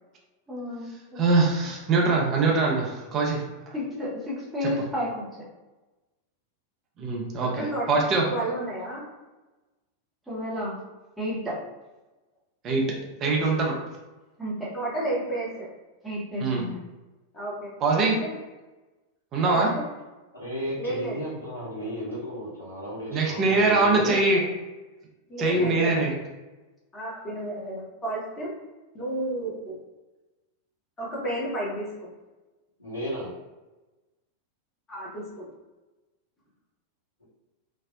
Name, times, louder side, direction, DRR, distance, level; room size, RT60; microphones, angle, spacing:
voice 1, 0.5-1.3 3.7-5.2 10.3-10.8 11.2-11.6 14.4-14.7 16.0-16.8, left 1 dB, 5° right, -8 dB, 0.8 m, -31 dB
voice 2, 1.2-3.4 4.6-4.7 7.0-8.3 12.6-12.8 13.2-13.7 16.4-16.6 17.8-18.2 19.3-19.7 23.1-24.4 25.4-26.1, right 3 dB, 30° right, -1 dB, 0.5 m, -23 dB
voice 3, 7.4-8.0 8.3-9.0 14.7-15.5 17.3-18.3 19.4-19.8 20.8-21.2 25.3-26.1 26.9-28.5 28.9-29.8 31.0-32.1 34.9-35.5, right 1 dB, 20° left, -5 dB, 1.0 m, -32 dB
voice 4, 20.3-24.1 25.5-26.1 32.8-33.3, equal, 85° left, -10 dB, 1.3 m, -33 dB
2.6 x 2.0 x 2.3 m, 1.1 s
figure-of-eight pair, 90°, 0 cm